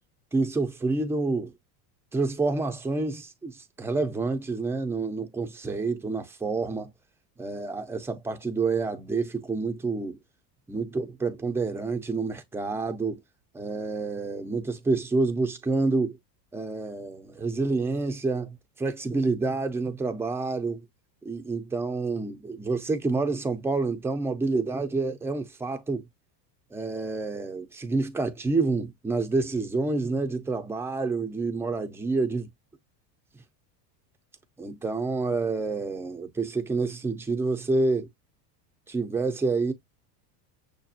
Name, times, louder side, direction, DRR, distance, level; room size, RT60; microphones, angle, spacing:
voice 1, 0.3-1.5 2.1-6.9 7.4-10.2 10.7-13.2 13.5-16.2 16.5-20.8 21.2-26.1 26.7-32.5 34.6-38.1 38.9-39.7, right 3 dB, 5° right, 0.3 m, -28 dB
6.6 x 2.3 x 2.7 m
supercardioid pair, 125°, 49 cm